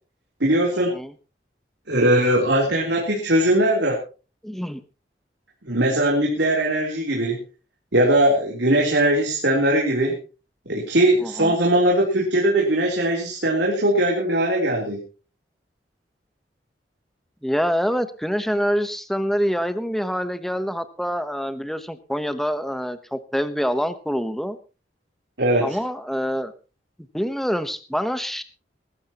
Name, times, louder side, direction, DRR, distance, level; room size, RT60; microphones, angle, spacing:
voice 1, 0.4-0.9 1.9-4.0 5.7-7.4 7.9-10.2 10.7-15.0 25.4-25.8, right 1 dB, 75° right, -2 dB, 3.6 m, -20 dB
voice 2, 4.4-4.8 11.2-11.6 17.4-24.6 25.6-26.5 27.1-28.4, equal, ahead, 11 dB, 1.0 m, -26 dB
21.5 x 13.0 x 3.0 m, 0.34 s
head